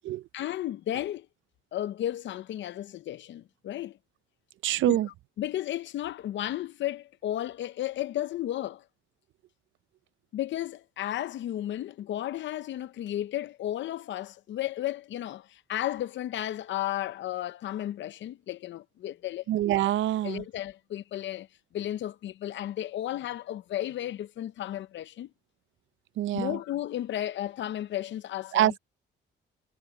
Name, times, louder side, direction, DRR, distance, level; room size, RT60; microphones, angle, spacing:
voice 1, 0.3-1.3 1.7-4.0 4.9-5.0 5.4-8.8 10.3-19.4 20.2-21.5 21.7-25.3 26.3-28.8, left 12 dB, 70° left, 0.7 m, -33 dB
voice 2, 4.6-5.1 19.5-20.4 26.2-26.6 28.5-28.8, right 13 dB, 75° right, 0.5 m, -25 dB
cardioid pair, 90°, 20 cm